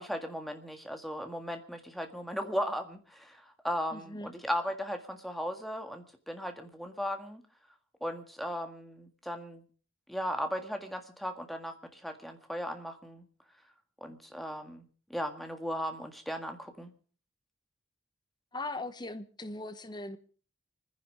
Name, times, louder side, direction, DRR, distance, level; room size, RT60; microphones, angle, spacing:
voice 1, 0.0-7.4 8.0-9.6 10.1-13.2 14.0-14.8 15.1-16.9, equal, ahead, 1.7 m, -37 dB
voice 2, 3.9-4.3 18.5-20.2, left 2 dB, 20° left, 1.1 m, -39 dB
24.5 x 10.5 x 5.1 m
head